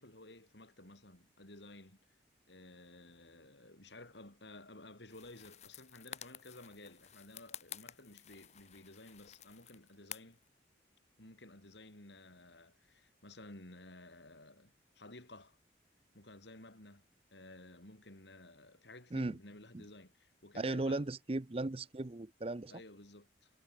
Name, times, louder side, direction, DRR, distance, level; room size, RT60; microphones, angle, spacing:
voice 1, 0.0-2.0 2.5-10.4 11.2-15.6 16.1-17.0 17.3-21.1 22.7-23.5, left 2 dB, 70° left, 4.6 m, -54 dB
sound 1, 5.1-10.5, left 10 dB, 35° left, 1.0 m, -51 dB
voice 2, 20.5-22.7, right 2 dB, 30° right, 0.6 m, -36 dB
head